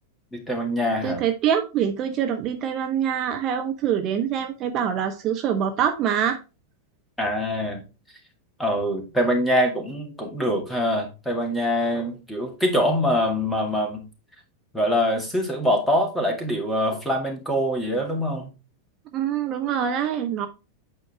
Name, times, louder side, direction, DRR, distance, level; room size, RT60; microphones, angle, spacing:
voice 1, 0.3-1.2 7.2-7.8 8.6-14.0 14.7-18.5, equal, 5° left, 2.1 m, -24 dB
voice 2, 1.0-6.4 19.1-20.5, right 8 dB, 35° right, 0.7 m, -25 dB
8.6 x 4.6 x 3.4 m
figure-of-eight pair, 90°, 0 cm